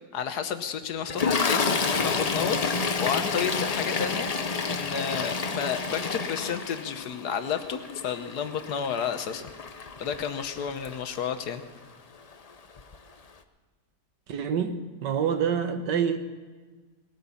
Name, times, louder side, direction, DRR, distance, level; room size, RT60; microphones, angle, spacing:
voice 1, 0.1-4.3 4.7-9.5 9.8-11.6, left 7 dB, 65° left, 9 dB, 1.5 m, -31 dB
Toilet flush, 1.1-11.4 12.3-12.5 12.8-13.0, left 4 dB, 50° left, 0.4 m, -30 dB
voice 2, 14.3-16.2, right 7 dB, 85° right, 8 dB, 1.8 m, -27 dB
19.5 x 9.4 x 7.1 m, 1.4 s
omnidirectional pair, 1.8 m